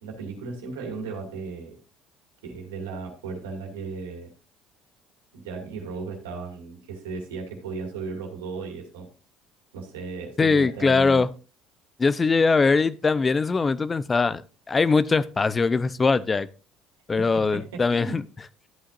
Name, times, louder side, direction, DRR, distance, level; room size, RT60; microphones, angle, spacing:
voice 1, 0.0-1.8 2.4-4.3 5.3-9.1 9.7-11.2 17.5-17.6 17.9-18.2, right 4 dB, 90° right, 2.3 m, -35 dB
voice 2, 10.4-11.3 12.0-14.4 14.7-16.5 17.1-18.2, left 4 dB, 25° left, 0.5 m, -21 dB
12.5 x 8.5 x 2.6 m
hypercardioid pair, 70°, 0 cm